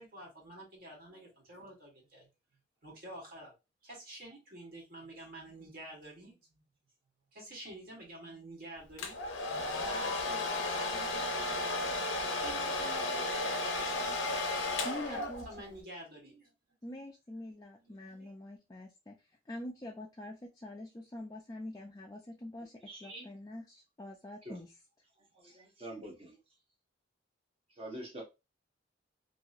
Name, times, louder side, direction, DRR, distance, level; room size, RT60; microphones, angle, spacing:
voice 1, 0.0-2.3 2.8-3.5 3.8-6.6 7.3-9.2 9.7-14.2 15.0-16.5 17.8-18.3, right 1 dB, 50° right, -1 dB, 1.4 m, -49 dB
Domestic sounds home sounds, 9.0-15.7, left 2 dB, 90° left, 0.6 m, -34 dB
voice 2, 14.8-15.7 16.8-24.7, left 1 dB, 20° left, -1 dB, 0.4 m, -45 dB
voice 3, 22.9-23.3 24.4-24.6 25.3-26.4 27.8-28.2, right 1 dB, 30° right, 0 dB, 1.0 m, -45 dB
2.9 x 2.7 x 2.4 m, 0.25 s
head